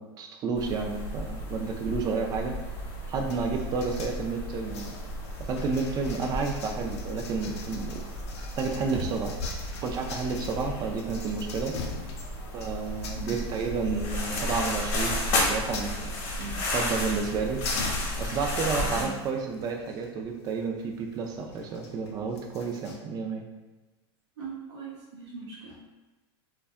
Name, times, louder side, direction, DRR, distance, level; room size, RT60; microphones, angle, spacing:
voice 1, 0.0-2.5 3.1-5.0 5.5-8.0 8.6-9.3 9.8-11.7 12.5-16.1 16.7-17.6 18.2-23.4, right 4 dB, 30° right, 2 dB, 0.3 m, -31 dB
sound 1, 0.5-19.1, left 1 dB, 55° left, 0.9 m, -33 dB
sound 2, 3.3-23.0, left 4 dB, 80° left, 0.5 m, -44 dB
voice 2, 16.4-16.7 18.8-19.1 24.4-25.7, right 4 dB, 85° right, -5 dB, 0.7 m, -39 dB
2.6 x 2.2 x 2.3 m, 1.1 s
supercardioid pair, 130°, 14 cm